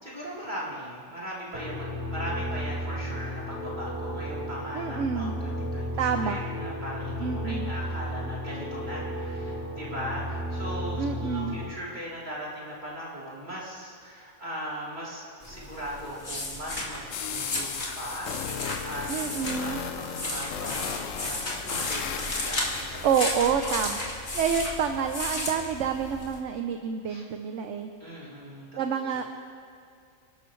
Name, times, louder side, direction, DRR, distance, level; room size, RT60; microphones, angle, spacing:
voice 1, 0.0-23.0 23.6-23.8 27.1-27.2 28.0-29.2, equal, 30° right, -7 dB, 3.8 m, -39 dB
sound 1, 1.5-11.6, equal, 75° right, 2.9 m, -33 dB
voice 2, 4.7-5.3 6.0-6.4 7.2-7.7 11.0-11.6 19.1-19.8 23.0-24.0 24.3-27.9 28.8-29.2, right 7 dB, 60° right, 6 dB, 1.0 m, -28 dB
sound 2, 15.4-26.4, left 2 dB, 45° left, 2.6 m, -34 dB
sound 3, 17.1-24.1, left 8 dB, 65° left, 1.0 m, -37 dB
29.5 x 12.5 x 3.2 m, 2.4 s
omnidirectional pair, 1.5 m